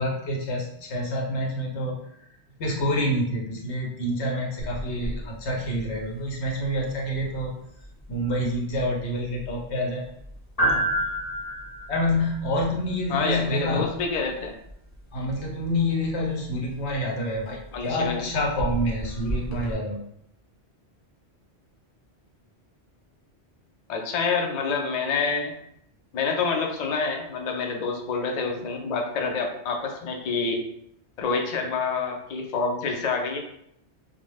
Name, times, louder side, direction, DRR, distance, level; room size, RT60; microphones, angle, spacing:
voice 1, 0.0-1.9 2.6-7.5 8.1-10.1 11.9-13.9 15.1-20.0, left 1 dB, 90° left, -1 dB, 1.0 m, -27 dB
sound 1, 4.6-19.7, right 1 dB, 25° left, 0.7 m, -34 dB
voice 2, 13.1-14.5 17.7-18.2 23.9-25.5 26.1-30.6 31.2-33.4, left 4 dB, 60° left, 2 dB, 0.4 m, -27 dB
2.4 x 2.0 x 3.1 m, 0.73 s
omnidirectional pair, 1.1 m